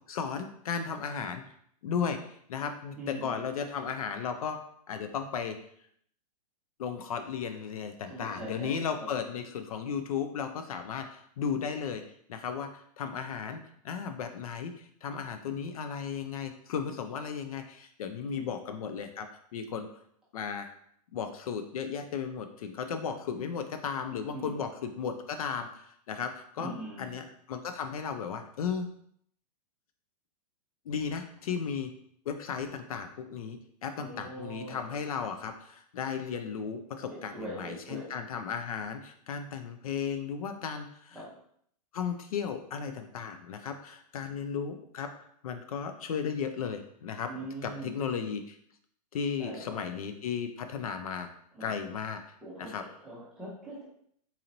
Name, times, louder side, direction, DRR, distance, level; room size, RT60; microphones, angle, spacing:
voice 1, 0.1-1.4 1.8-4.6 4.9-5.6 6.8-12.0 12.3-19.9 20.3-20.7 21.1-26.7 27.0-28.9 30.9-31.9 32.3-41.2 41.9-47.3 47.6-48.6 49.1-51.3 51.6-52.2 52.6-52.8, left 6 dB, 65° left, 8 dB, 0.4 m, -35 dB
voice 2, 3.0-3.4 8.1-9.1 18.2-18.5 24.3-24.6 26.6-27.1 34.0-34.8 37.1-38.1 41.1-41.3 47.3-48.0 49.4-49.9 51.5-51.9 52.4-53.8, right 1 dB, 5° right, -8 dB, 0.6 m, -42 dB
4.0 x 2.9 x 2.6 m, 0.66 s
supercardioid pair, 175°, 20 cm